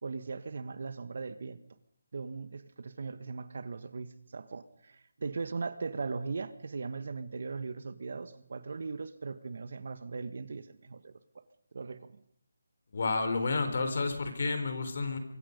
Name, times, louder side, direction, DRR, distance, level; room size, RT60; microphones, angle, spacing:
voice 1, 0.0-1.6 2.1-11.4 11.7-12.1, right 4 dB, 50° right, 1.6 m, -39 dB
voice 2, 12.9-15.2, left 3 dB, 50° left, 4.2 m, -30 dB
24.5 x 23.0 x 5.4 m
figure-of-eight pair, 170°, 0 cm